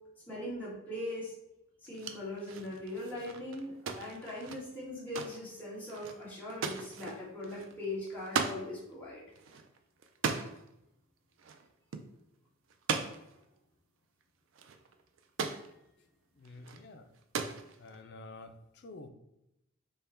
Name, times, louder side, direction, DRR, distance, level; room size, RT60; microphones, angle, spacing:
voice 1, 0.3-1.3 1.8-9.2 16.7-16.8, left 1 dB, 5° left, -8 dB, 1.4 m, -40 dB
sound 1, 1.9-8.6 8.9-9.0 9.3-10.7 11.4-11.7 11.9-12.1 12.7-13.4 14.2-14.3 14.5-15.7 16.5-16.8 17.1-18.0, right 5 dB, 60° right, 0.4 m, -38 dB
voice 2, 16.4-17.1 17.8-19.1, left 2 dB, 50° left, 7 dB, 0.4 m, -49 dB
5.4 x 2.2 x 4.2 m, 0.85 s
head